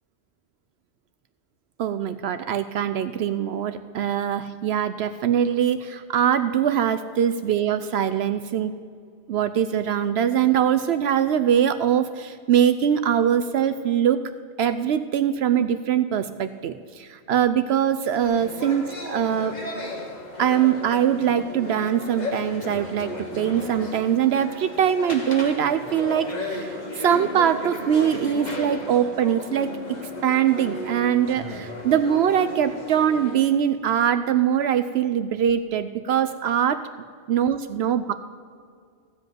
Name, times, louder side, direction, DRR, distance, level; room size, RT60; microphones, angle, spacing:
voice 1, 1.8-8.7 9.3-14.2 14.6-19.5 20.4-36.8 37.3-38.1, right 9 dB, 70° right, 11 dB, 0.8 m, -22 dB
sound 1, 18.2-33.5, left 1 dB, 40° left, 1.8 m, -34 dB
15.5 x 5.3 x 9.1 m, 2.1 s
omnidirectional pair, 1.1 m